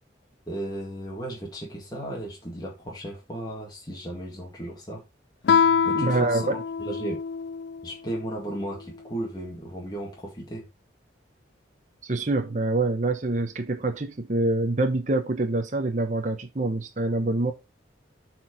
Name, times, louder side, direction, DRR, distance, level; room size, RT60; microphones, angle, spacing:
voice 1, 0.5-5.0 5.8-7.2 7.8-10.7, right 1 dB, 20° left, 2.0 m, -35 dB
Guitar, 5.4-7.9, left 6 dB, 65° left, 0.3 m, -24 dB
voice 2, 5.9-6.6 12.0-17.5, right 2 dB, 40° right, 0.8 m, -25 dB
7.7 x 4.6 x 4.6 m
head